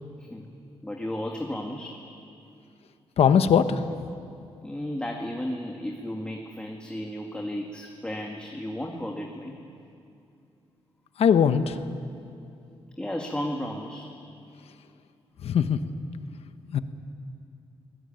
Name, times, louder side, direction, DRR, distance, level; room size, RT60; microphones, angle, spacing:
voice 1, 0.8-2.0 4.6-9.6 13.0-14.1, left 1 dB, 10° left, 1 dB, 2.1 m, -34 dB
voice 2, 3.2-3.8 11.2-11.8 15.4-15.8 16.7-16.8, left 7 dB, 75° left, 10 dB, 1.2 m, -20 dB
23.0 x 19.0 x 9.1 m, 2.6 s
cardioid pair, 95°, 10 cm